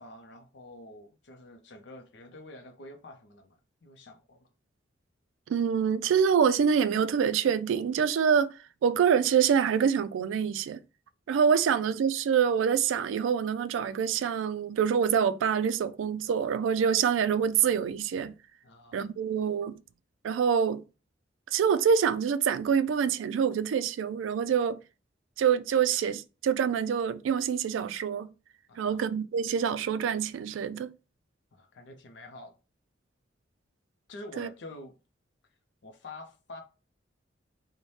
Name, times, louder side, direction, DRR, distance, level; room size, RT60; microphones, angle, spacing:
voice 1, 0.0-4.5 11.5-11.8 18.6-19.0 28.7-29.0 31.5-32.5 34.1-34.9 35.8-36.6, left 2 dB, 70° left, 0.5 m, -47 dB
voice 2, 5.5-8.5 8.8-10.8 11.3-18.3 18.9-19.8 20.2-20.8 21.5-24.8 25.4-28.3 28.8-30.9 34.4-34.5, right 7 dB, 85° right, 0.3 m, -26 dB
3.1 x 2.1 x 4.0 m
head